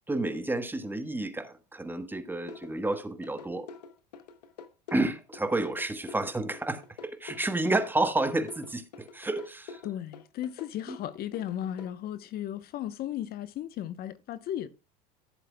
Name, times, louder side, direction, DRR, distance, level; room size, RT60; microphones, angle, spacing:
voice 1, 0.1-3.7 4.9-9.8 10.9-11.0, right 2 dB, 10° right, 1.4 m, -30 dB
sound 1, 2.5-11.9, left 5 dB, 90° left, 1.1 m, -46 dB
voice 2, 9.8-14.7, left 11 dB, 50° left, 0.9 m, -35 dB
14.5 x 7.5 x 2.2 m
hypercardioid pair, 85°, 20 cm